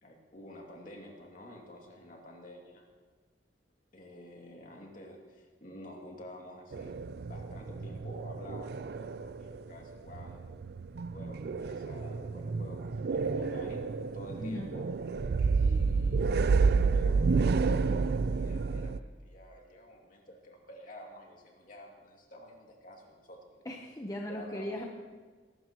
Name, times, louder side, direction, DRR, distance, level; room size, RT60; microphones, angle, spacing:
voice 1, 0.0-2.8 3.9-7.0 7.3-10.5 11.1-12.8 13.1-14.8 15.6-23.6 24.3-24.8, left 1 dB, 50° left, 0 dB, 2.5 m, -50 dB
sound 1, 6.7-9.6 9.9-19.0, right 4 dB, 60° right, 0.4 m, -30 dB
voice 2, 14.4-14.7 23.6-24.8, left 1 dB, 20° left, 0 dB, 0.9 m, -38 dB
21.5 x 12.5 x 3.0 m, 1.4 s
head